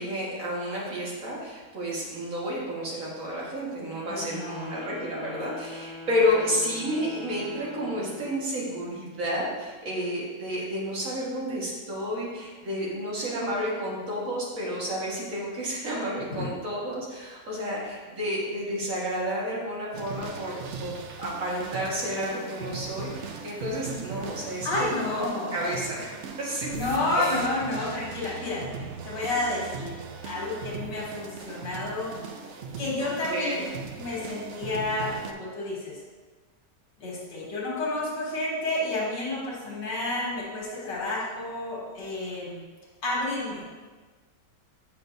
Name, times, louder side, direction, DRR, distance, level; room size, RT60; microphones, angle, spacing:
voice 1, 0.0-25.3 25.5-26.1 26.4-26.7 27.2-27.5 33.0-33.7, equal, 50° right, -4 dB, 2.0 m, -31 dB
Wind instrument woodwind instrument, 3.8-8.4, left 2 dB, 35° right, 0.9 m, -42 dB
voice 2, 4.1-4.7 16.3-16.5 24.6-25.8 26.7-28.6 29.0-30.0 30.2-32.1 32.8-33.5 34.0-36.0 37.0-42.6 43.0-43.6, left 2 dB, 85° left, -5 dB, 2.2 m, -30 dB
sound 1, 19.9-35.3, right 5 dB, 75° right, 0.6 m, -39 dB
8.8 x 5.7 x 2.6 m, 1.4 s
omnidirectional pair, 1.8 m